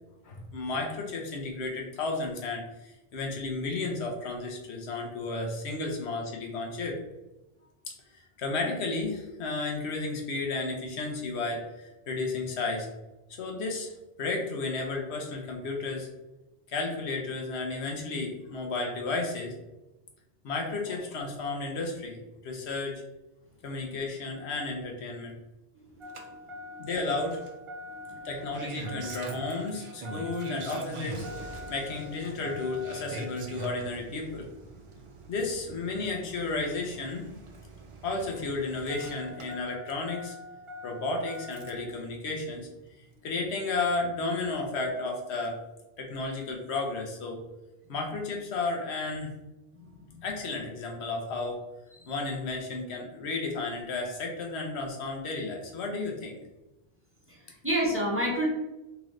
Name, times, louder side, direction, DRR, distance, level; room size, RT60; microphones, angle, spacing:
voice 1, 0.2-7.0 7.9-12.9 13.4-13.9 14.2-16.1 16.7-19.6 20.4-23.0 23.6-25.3 26.8-27.4 28.2-31.3 31.7-34.5 35.3-37.3 38.0-40.3 40.8-42.7 43.2-45.6 46.0-47.4 47.9-49.3 50.2-51.6 52.1-56.4, left 3 dB, 90° left, 1 dB, 1.1 m, -33 dB
Engine starting, 26.0-41.9 43.2-43.3, right 1 dB, 45° right, 0.4 m, -42 dB
voice 2, 57.3-58.5, right 1 dB, 15° right, -4 dB, 0.9 m, -30 dB
3.7 x 3.0 x 3.1 m, 1.0 s
omnidirectional pair, 1.1 m